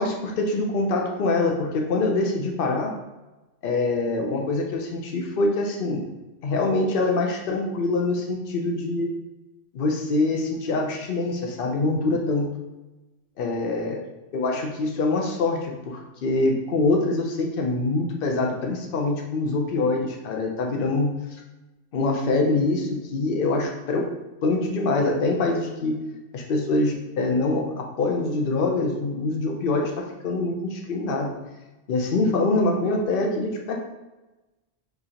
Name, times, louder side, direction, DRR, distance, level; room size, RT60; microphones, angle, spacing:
voice 1, 0.0-2.9 3.6-6.0 6.4-9.1 9.7-12.5 13.4-14.0 14.3-21.1 21.9-24.1 24.4-26.0 26.3-31.3 31.9-33.7, left 2 dB, 55° left, 1 dB, 0.8 m, -24 dB
4.5 x 3.2 x 2.9 m, 1.1 s
omnidirectional pair, 1.2 m